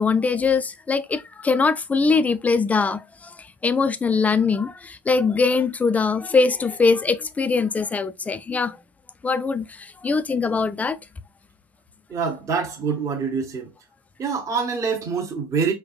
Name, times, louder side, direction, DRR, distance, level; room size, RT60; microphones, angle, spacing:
voice 1, 0.0-8.8 9.2-11.0, left 4 dB, 15° left, 0.3 m, -22 dB
voice 2, 12.1-13.7 14.2-15.7, right 5 dB, 25° right, 0.9 m, -25 dB
4.6 x 3.4 x 2.3 m
supercardioid pair, 120°, 12 cm